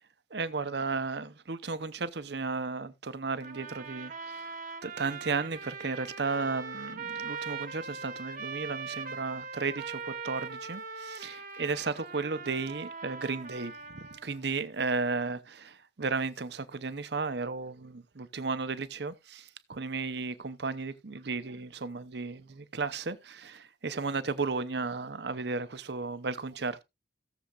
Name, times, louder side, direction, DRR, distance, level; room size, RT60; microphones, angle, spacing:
voice 1, 0.3-4.5 4.8-26.8, right 4 dB, 60° right, 0.8 m, -34 dB
sound 1, 3.4-14.4, right 5 dB, 45° right, 1.2 m, -41 dB
17.5 x 7.0 x 2.4 m
head